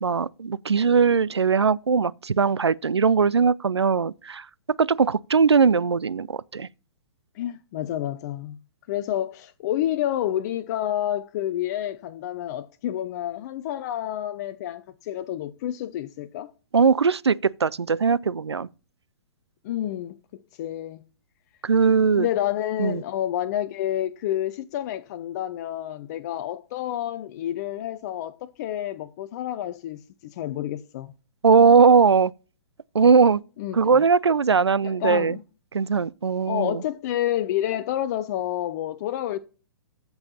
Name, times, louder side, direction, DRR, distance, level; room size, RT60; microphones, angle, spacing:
voice 1, 0.0-4.5 4.8-6.7 16.7-18.7 21.6-22.3 22.8-23.0 31.4-32.3 32.9-33.4 33.7-35.4 35.7-36.8, right 5 dB, 85° right, 0.6 m, -20 dB
voice 2, 7.3-8.6 8.9-16.5 19.6-20.1 20.5-21.0 22.1-31.1 33.6-34.0 34.8-35.4 36.5-39.4, left 12 dB, 40° left, 0.7 m, -29 dB
14.0 x 5.6 x 4.2 m
figure-of-eight pair, 120°, 14 cm